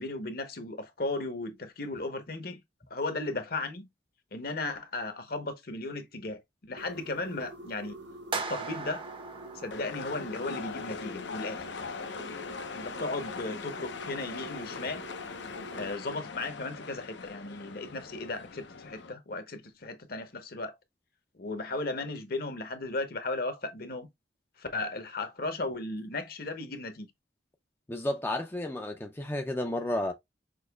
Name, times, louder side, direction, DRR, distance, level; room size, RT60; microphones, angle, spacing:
voice 1, 0.0-2.6 2.9-3.9 4.3-8.0 8.3-9.1 9.6-11.6 12.7-15.1 15.7-20.7 21.4-24.1 24.6-27.1, left 2 dB, 55° left, 1.0 m, -36 dB
sound 1, 6.8-15.9, equal, 70° right, 0.9 m, -47 dB
sound 2, 8.3-10.6, right 4 dB, 30° right, 0.7 m, -38 dB
sound 3, 9.7-19.1, left 5 dB, 75° left, 0.8 m, -41 dB
voice 2, 27.9-30.1, left 1 dB, 10° left, 0.5 m, -32 dB
6.4 x 2.9 x 2.3 m
head